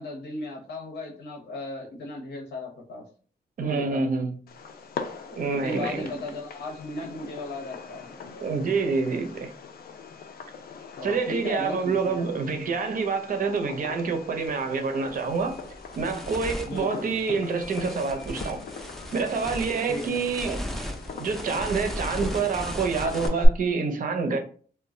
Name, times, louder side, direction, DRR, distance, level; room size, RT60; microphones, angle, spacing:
voice 1, 0.0-3.0 3.6-4.1 5.5-8.4 11.0-12.3 16.6-17.4 19.9-20.2, left 2 dB, 85° left, 0.8 m, -36 dB
voice 2, 3.6-4.4 5.4-6.1 8.4-9.5 11.0-15.6 16.0-18.6 19.1-20.6 21.1-24.4, right 4 dB, 55° right, 0.5 m, -27 dB
Fireworks, 4.5-23.5, left 3 dB, 65° left, 0.4 m, -39 dB
sound 1, 14.4-14.6 15.1-23.3, equal, ahead, 0.4 m, -36 dB
2.2 x 2.0 x 3.6 m
wide cardioid pair, 125°, 17 cm